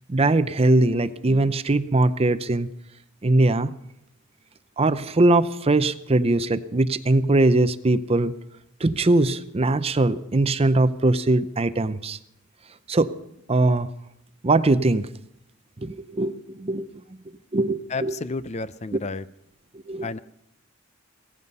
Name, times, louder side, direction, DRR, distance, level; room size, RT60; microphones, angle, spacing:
voice 1, 0.1-2.7 3.2-3.7 4.8-8.3 8.8-12.2 12.9-13.1 13.5-13.9 14.4-15.1 15.8-16.9 17.5-18.1 19.9-20.2, right 2 dB, 30° right, 13 dB, 0.6 m, -21 dB
voice 2, 17.9-19.2 20.0-20.2, left 3 dB, 35° left, 15 dB, 0.5 m, -31 dB
17.5 x 15.0 x 5.4 m, 0.77 s
head